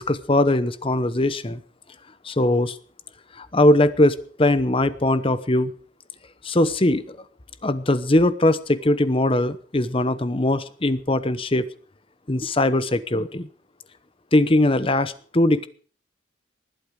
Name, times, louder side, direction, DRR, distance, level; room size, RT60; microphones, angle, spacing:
voice 1, 0.0-1.6 2.2-2.8 3.4-5.7 6.4-7.2 7.6-11.7 12.3-13.5 14.3-15.7, left 1 dB, 30° left, 14 dB, 0.9 m, -20 dB
20.0 x 11.5 x 5.1 m, 0.43 s
head